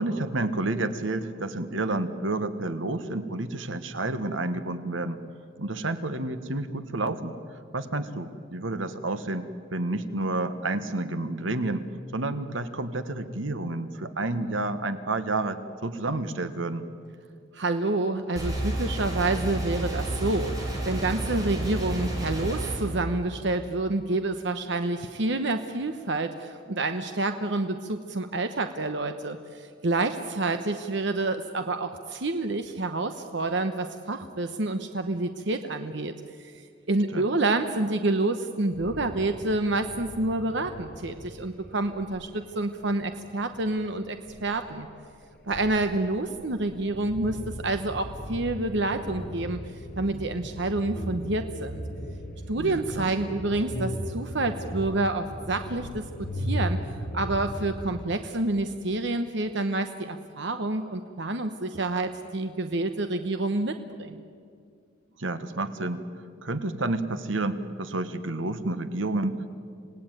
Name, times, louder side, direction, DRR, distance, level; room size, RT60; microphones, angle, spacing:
voice 1, 0.0-5.2 5.6-7.3 7.7-11.8 12.1-16.8 37.1-37.3 52.6-53.1 65.2-66.0 66.4-69.5, right 2 dB, 85° right, 11 dB, 1.4 m, -30 dB
voice 2, 17.5-36.1 36.4-36.5 36.9-44.9 45.5-49.6 50.0-51.8 52.5-56.0 56.4-56.8 57.1-64.2, right 2 dB, 65° right, 8 dB, 1.0 m, -28 dB
sound 1, 18.4-22.8, right 1 dB, 20° right, 5.3 m, -30 dB
sound 2, 38.7-58.1, equal, 50° left, 1.9 m, -37 dB
27.0 x 18.0 x 9.1 m, 2.2 s
head